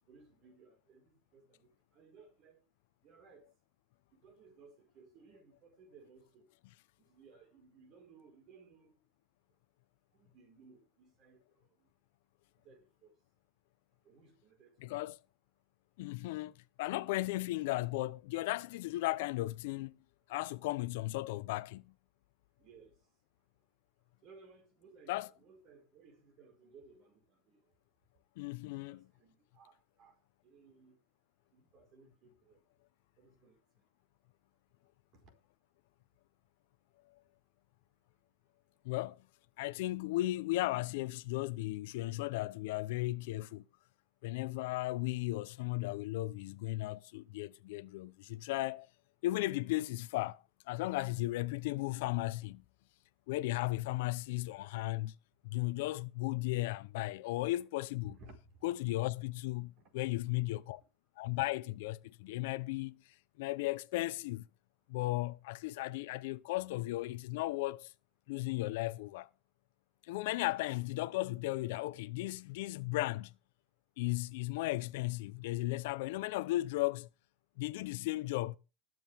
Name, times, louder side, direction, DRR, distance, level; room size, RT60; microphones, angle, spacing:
voice 1, 0.1-2.6 3.0-3.5 4.1-6.5 7.0-9.1 10.1-11.9 12.6-13.2 14.0-15.0 22.6-23.0 24.2-27.6 28.6-30.2 30.4-31.0 31.5-32.6 33.2-33.8 35.1-35.3 58.0-58.7 59.8-60.1, right 4 dB, 45° right, 4.6 m, -60 dB
voice 2, 14.8-15.2 16.0-16.5 16.8-20.0 20.3-21.9 25.1-25.3 28.4-29.0 38.8-39.2 39.6-43.6 44.2-48.9 49.2-52.6 53.3-55.1 55.4-58.2 58.6-60.8 61.2-63.0 63.4-64.5 64.9-67.9 68.3-69.3 70.1-73.3 74.0-77.1 77.6-78.6, left 18 dB, 80° left, 0.8 m, -35 dB
20.5 x 7.7 x 3.6 m
supercardioid pair, 155°, 0 cm